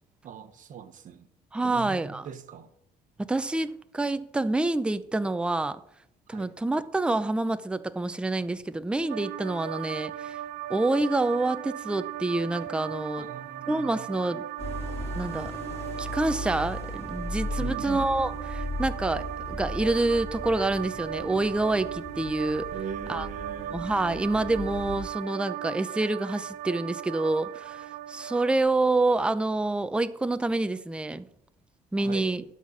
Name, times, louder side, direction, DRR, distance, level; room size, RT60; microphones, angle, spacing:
voice 1, 0.2-1.3 1.6-2.7 6.3-6.5 13.2-14.1 17.6-18.1 22.7-23.9 32.0-32.3, right 8 dB, 50° right, 1.1 m, -40 dB
voice 2, 1.5-2.2 3.2-5.8 6.3-10.4 10.7-13.3 13.7-14.5 15.1-15.5 16.0-22.7 23.1-23.3 23.7-31.3 31.9-32.4, right 2 dB, 5° right, 0.5 m, -27 dB
sound 1, 9.1-28.6, right 12 dB, 85° right, 0.5 m, -37 dB
sound 2, 14.6-25.1, left 1 dB, 15° left, 3.4 m, -37 dB
12.0 x 4.1 x 7.2 m
cardioid pair, 110°, 17 cm